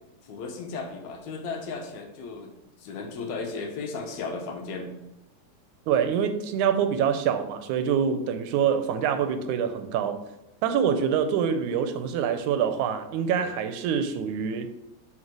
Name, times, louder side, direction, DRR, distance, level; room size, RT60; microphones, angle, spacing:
voice 1, 0.3-2.5 2.8-5.0, left 4 dB, 75° left, 3 dB, 2.2 m, -35 dB
voice 2, 5.9-10.2 10.6-14.7, right 7 dB, 85° right, 9 dB, 2.0 m, -25 dB
6.5 x 3.7 x 6.0 m, 0.93 s
omnidirectional pair, 3.4 m